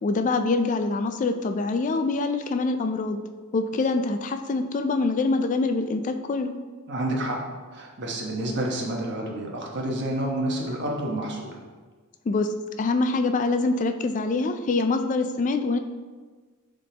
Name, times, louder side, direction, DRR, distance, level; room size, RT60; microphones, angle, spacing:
voice 1, 0.0-3.2 3.5-6.5 12.3-15.8, left 3 dB, 35° left, 7 dB, 0.3 m, -25 dB
voice 2, 6.9-7.4 7.7-11.6, right 1 dB, 55° right, -1 dB, 1.1 m, -29 dB
10.5 x 3.8 x 2.9 m, 1.4 s
head